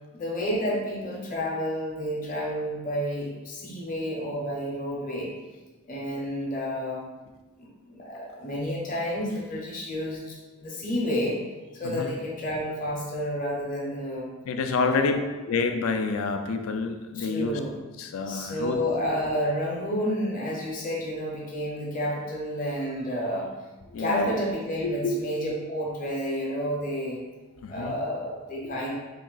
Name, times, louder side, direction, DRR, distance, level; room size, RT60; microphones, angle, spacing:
voice 1, 0.1-5.3 5.8-7.1 7.6-11.4 11.7-14.3 14.8-15.2 17.1-17.7 18.3-23.5 24.0-27.2 27.7-28.9, equal, 35° left, -3 dB, 0.7 m, -30 dB
voice 2, 11.8-12.2 14.5-15.2 15.5-17.6 18.0-18.8 23.9-24.3 24.8-25.2 27.6-28.0 28.6-28.9, left 4 dB, 70° left, 7 dB, 0.4 m, -28 dB
3.2 x 2.6 x 3.9 m, 1.2 s
head